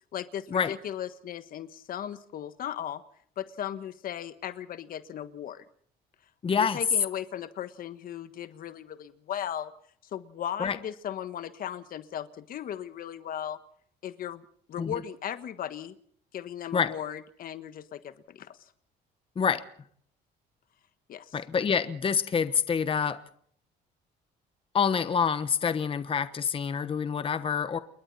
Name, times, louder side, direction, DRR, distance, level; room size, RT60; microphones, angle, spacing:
voice 1, 0.1-3.0 3.4-5.6 6.6-9.7 10.1-13.6 14.0-14.4 14.7-15.9 16.3-18.6 21.1-21.4, left 10 dB, 60° left, 12 dB, 1.4 m, -37 dB
voice 2, 6.4-6.8 10.6-10.8 14.8-15.0 16.7-16.9 19.4-19.6 21.3-23.2 24.7-27.8, left 6 dB, 30° left, 11 dB, 1.2 m, -27 dB
28.5 x 22.0 x 4.2 m, 0.62 s
cardioid pair, 110°, 17 cm